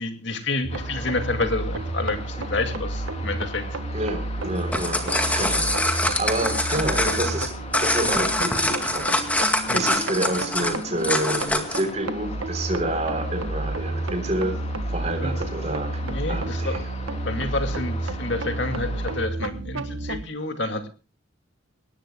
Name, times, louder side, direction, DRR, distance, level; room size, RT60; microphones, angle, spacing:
voice 1, 0.0-3.8 9.7-9.8 15.2-15.3 16.0-16.8 17.2-20.9, left 2 dB, 60° left, 7 dB, 2.2 m, -29 dB
sound 1, 0.6-20.2, right 2 dB, 80° right, 1.5 m, -31 dB
sound 2, 0.7-19.3, left 2 dB, 30° left, 3.2 m, -40 dB
voice 2, 3.9-14.6 14.9-16.0 16.3-16.9, right 1 dB, 35° right, 7 dB, 3.7 m, -29 dB
sound 3, 4.6-11.9, left 1 dB, 5° left, 2.0 m, -24 dB
21.5 x 18.5 x 2.3 m, 0.32 s
head